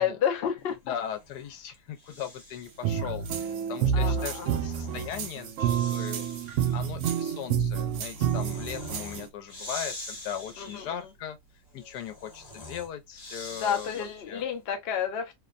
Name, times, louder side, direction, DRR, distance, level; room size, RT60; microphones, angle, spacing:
voice 1, 0.0-0.9 3.9-4.6 10.6-11.0 13.5-15.4, left 8 dB, 60° left, 0.6 m, -30 dB
voice 2, 0.9-6.3 6.7-11.4 11.7-14.4, left 9 dB, 80° left, 1.2 m, -38 dB
Breathing, 0.9-2.8 4.1-14.4, left 1 dB, 30° left, 0.8 m, -45 dB
sound 1, 2.8-9.3, right 8 dB, 75° right, 0.7 m, -28 dB
2.9 x 2.1 x 2.4 m
omnidirectional pair, 1.7 m